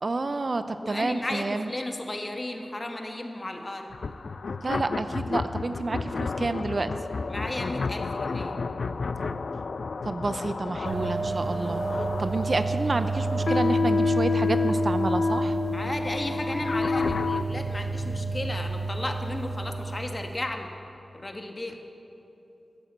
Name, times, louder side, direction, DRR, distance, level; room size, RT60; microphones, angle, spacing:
voice 1, 0.0-1.7 4.6-6.9 10.0-11.8 12.2-15.6, right 3 dB, 50° right, 10 dB, 0.6 m, -29 dB
voice 2, 0.8-4.0 7.3-8.6 15.7-20.7 21.1-21.7, left 1 dB, 30° left, 4 dB, 1.3 m, -34 dB
sound 1, 3.9-17.4, left 4 dB, 70° left, 0.4 m, -30 dB
sound 2, 10.8-20.4, right 3 dB, 80° right, 1.0 m, -31 dB
13.5 x 9.7 x 8.0 m, 3.0 s
wide cardioid pair, 75°, 0 cm